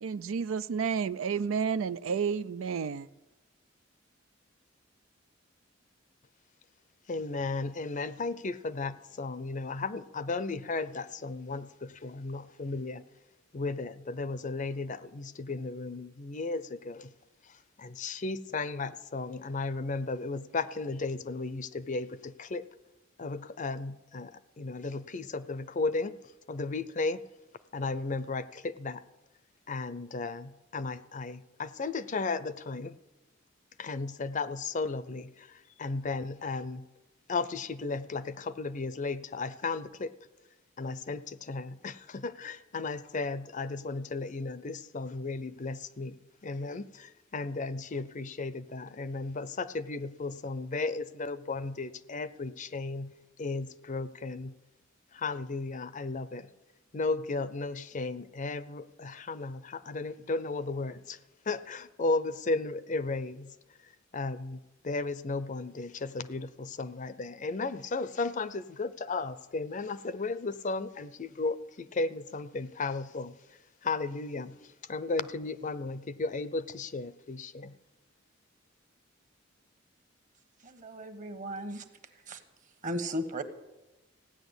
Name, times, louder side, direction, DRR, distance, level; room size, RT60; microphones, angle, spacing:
voice 1, 0.0-3.1, right 6 dB, 90° right, 0.4 m, -31 dB
voice 2, 7.1-13.0 13.5-17.1 17.4-22.7 23.2-26.1 26.5-27.2 27.7-29.0 29.7-33.0 33.8-36.9 37.3-40.1 40.8-53.1 53.4-54.6 55.1-56.5 56.9-61.2 61.5-63.6 64.1-73.3 73.8-77.7, left 3 dB, 40° left, 0.6 m, -35 dB
voice 3, 80.6-81.8 82.3-82.4 82.8-83.4, equal, 40° right, 1.3 m, -36 dB
16.0 x 10.0 x 8.1 m
head